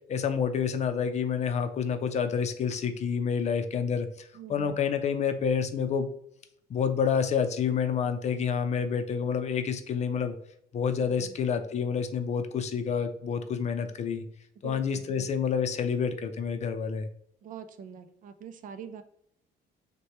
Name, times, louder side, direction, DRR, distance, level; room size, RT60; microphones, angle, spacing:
voice 1, 0.1-6.1 6.7-10.3 10.7-14.2 14.6-17.1, left 6 dB, 40° left, 8 dB, 0.5 m, -28 dB
voice 2, 4.3-4.8 11.0-11.4 14.6-15.5 17.4-19.0, right 7 dB, 50° right, 9 dB, 0.5 m, -45 dB
6.2 x 2.2 x 2.9 m, 0.73 s
cardioid pair, 110°, 17 cm